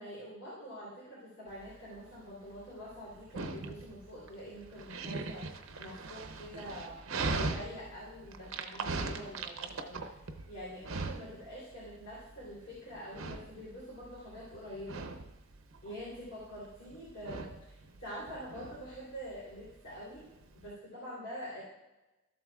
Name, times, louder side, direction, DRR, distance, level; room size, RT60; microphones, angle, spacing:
voice 1, 0.0-7.0 7.3-10.1 10.5-15.1 15.8-20.3 20.5-21.6, equal, 65° left, -9 dB, 3.2 m, -46 dB
Dog, 1.5-20.7, right 3 dB, 85° right, 0.7 m, -41 dB
13.5 x 7.9 x 2.4 m, 1.0 s
head